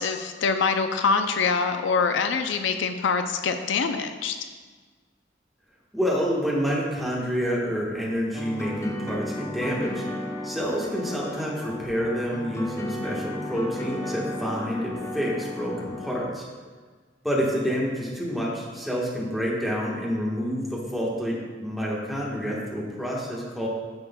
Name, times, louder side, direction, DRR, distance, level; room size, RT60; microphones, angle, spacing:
voice 1, 0.0-4.4, left 5 dB, 75° left, 8 dB, 0.4 m, -24 dB
voice 2, 5.9-10.0 10.4-16.4 17.2-23.7, equal, ahead, -6 dB, 1.2 m, -28 dB
sound 1, 8.3-16.3, left 1 dB, 15° left, 0.5 m, -34 dB
9.5 x 6.1 x 2.2 m, 1.5 s
head